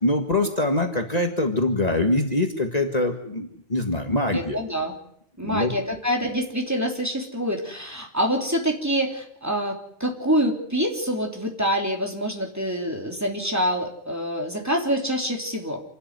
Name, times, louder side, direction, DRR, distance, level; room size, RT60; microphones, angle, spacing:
voice 1, 0.0-4.6 5.4-5.7, left 2 dB, 35° left, 3 dB, 1.9 m, -24 dB
voice 2, 4.3-5.0 5.4-15.8, equal, 15° right, 1 dB, 3.3 m, -26 dB
27.0 x 12.5 x 9.6 m, 0.71 s
omnidirectional pair, 1.2 m